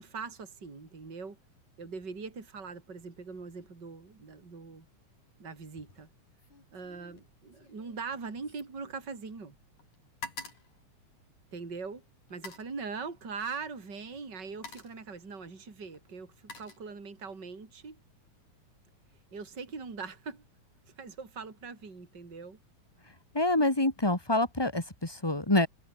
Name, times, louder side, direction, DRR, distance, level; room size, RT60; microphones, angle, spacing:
voice 1, 0.0-1.4 1.8-4.9 5.4-6.1 6.7-9.6 11.5-18.0 19.3-20.5 20.9-22.6, right 5 dB, 35° right, 4.6 m, -41 dB
sound 1, 5.7-6.1 6.4-9.5 9.8-11.7 12.3-12.8 13.8-14.0 14.4-15.1 15.9-17.3 17.7-18.1, left 4 dB, 85° left, 8.1 m, -48 dB
voice 2, 23.3-25.7, left 2 dB, 10° left, 2.7 m, -26 dB
omnidirectional pair, 3.3 m